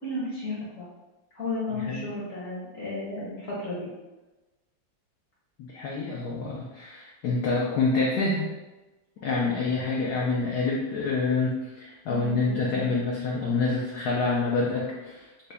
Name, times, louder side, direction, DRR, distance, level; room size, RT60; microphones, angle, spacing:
voice 1, 0.0-0.9 1.3-3.9 12.1-12.8, left 2 dB, 55° left, -6 dB, 0.9 m, -33 dB
voice 2, 1.7-2.1 5.6-8.5 9.2-15.3, left 3 dB, 90° left, -3 dB, 0.8 m, -27 dB
3.8 x 2.1 x 3.3 m, 1.1 s
omnidirectional pair, 2.2 m